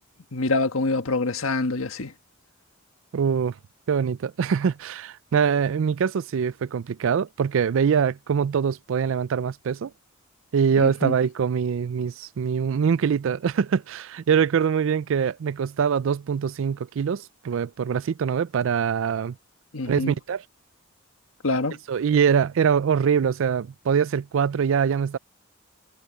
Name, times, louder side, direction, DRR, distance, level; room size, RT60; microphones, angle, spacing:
voice 1, 0.3-2.1 10.8-11.1 19.7-20.1 21.4-21.8, left 3 dB, 85° left, 1.6 m, -25 dB
voice 2, 3.1-3.5 3.9-9.9 10.5-19.4 19.9-20.4 21.9-25.2, right 7 dB, 70° right, 0.4 m, -23 dB
head